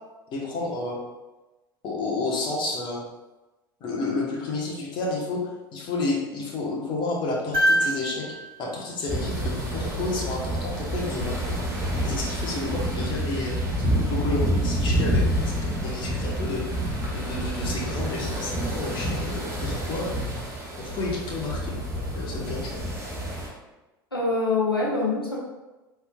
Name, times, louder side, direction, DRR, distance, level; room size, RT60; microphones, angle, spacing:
voice 1, 0.3-1.0 1.8-3.0 3.8-8.2 8.6-11.4 12.0-13.6 14.1-20.2 20.8-21.7 22.1-22.8, left 3 dB, 40° left, -3 dB, 1.1 m, -31 dB
sound 1, 7.5-9.9 11.9-12.0, equal, 60° right, 1.4 m, -27 dB
sound 2, 9.1-23.5, equal, 25° right, 1.3 m, -28 dB
voice 2, 24.1-25.4, left 3 dB, 90° left, -4 dB, 0.8 m, -24 dB
4.4 x 3.5 x 2.2 m, 1.1 s
figure-of-eight pair, 70°, 12 cm